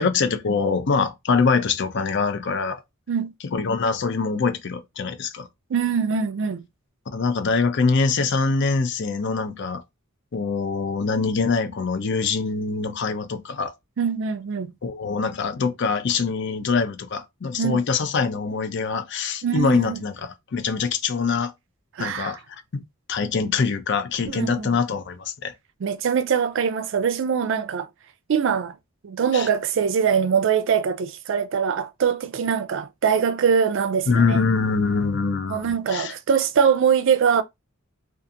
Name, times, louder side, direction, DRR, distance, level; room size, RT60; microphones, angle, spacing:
voice 1, 0.0-2.8 3.5-5.5 7.1-9.8 10.3-13.7 14.8-21.5 22.0-22.4 22.7-22.8 23.1-25.5 29.3-29.5 34.1-36.1, left 4 dB, 55° left, 0.5 m, -24 dB
voice 2, 5.7-6.6 14.0-14.7 17.6-17.8 19.4-20.0 22.0-22.4 24.3-24.7 25.8-27.9 28.3-28.8 29.0-34.4 35.5-37.4, right 7 dB, 60° right, 0.4 m, -23 dB
2.6 x 2.4 x 2.5 m
head